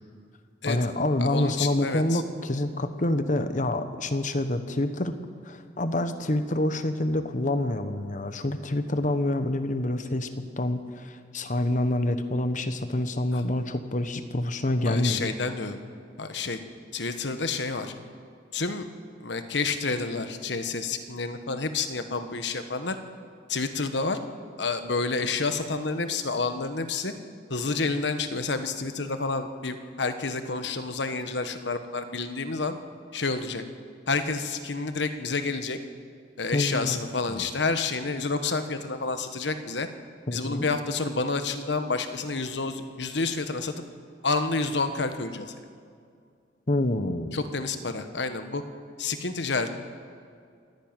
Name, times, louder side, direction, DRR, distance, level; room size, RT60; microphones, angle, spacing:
voice 1, 0.7-5.2 5.4-10.3 10.6-15.3 36.5-37.0 37.3-37.5 40.3-40.7 46.7-47.4, left 1 dB, 45° left, 9 dB, 1.2 m, -27 dB
voice 2, 1.2-2.2 14.8-15.8 16.2-16.6 16.9-17.9 18.5-18.8 19.2-22.9 23.5-24.2 24.6-27.1 27.5-32.8 33.1-33.6 34.1-35.8 36.4-39.9 40.3-43.7 44.2-45.5 47.3-48.6 49.0-49.7, left 4 dB, 70° left, 9 dB, 1.3 m, -29 dB
27.0 x 11.0 x 9.0 m, 2.3 s
head